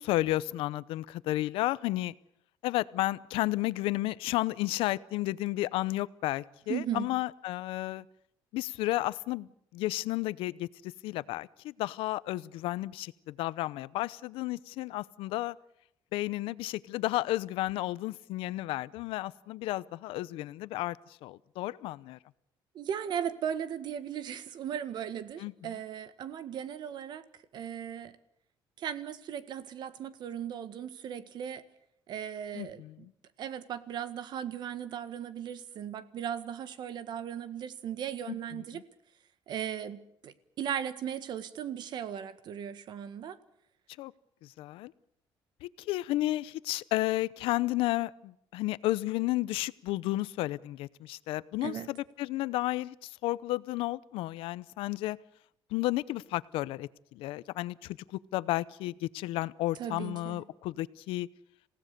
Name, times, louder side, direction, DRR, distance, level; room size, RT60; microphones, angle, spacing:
voice 1, 0.0-2.1 2.6-8.0 8.5-15.5 16.1-21.0 21.2-22.2 25.4-25.5 32.5-32.9 38.3-38.8 44.0-44.1 44.4-44.9 45.6-55.2 55.7-58.0 58.3-61.3, left 17 dB, 90° left, 18 dB, 0.8 m, -32 dB
voice 2, 6.7-7.1 22.7-28.2 28.8-31.6 32.1-32.8 33.4-38.8 39.5-43.4 51.6-51.9 59.7-60.4, right 9 dB, 55° right, 13 dB, 1.7 m, -37 dB
27.5 x 17.0 x 6.8 m, 0.75 s
cardioid pair, 145°, 9 cm